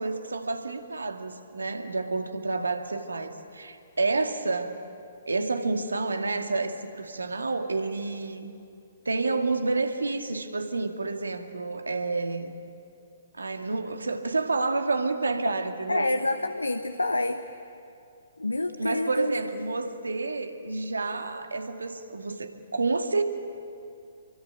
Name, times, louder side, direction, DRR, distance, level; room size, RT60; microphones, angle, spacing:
voice 1, 0.0-4.8 5.3-8.5 9.1-12.6 13.4-16.1 18.8-23.2, right 3 dB, 75° right, 5 dB, 2.3 m, -29 dB
voice 2, 15.9-17.4 18.4-19.3 19.7-19.8, left 2 dB, 85° left, 8 dB, 1.1 m, -28 dB
28.0 x 23.0 x 9.1 m, 2.6 s
figure-of-eight pair, 125°, 0 cm